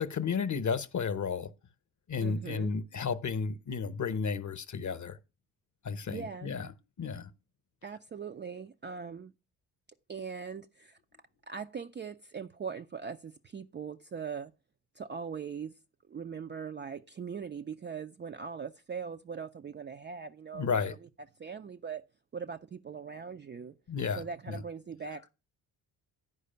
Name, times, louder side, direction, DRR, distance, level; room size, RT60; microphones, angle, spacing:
voice 1, 0.0-1.5 2.1-5.2 5.8-6.7 7.0-7.3 20.5-20.9 23.9-24.6, left 5 dB, 35° left, 0.9 m, -32 dB
voice 2, 2.2-2.7 6.1-6.5 7.8-9.3 10.1-11.0 11.5-14.5 14.9-15.7 16.1-21.1 21.4-22.0 22.3-23.8 24.2-25.3, right 6 dB, 25° right, 0.4 m, -41 dB
9.7 x 4.9 x 5.5 m
hypercardioid pair, 45°, 49 cm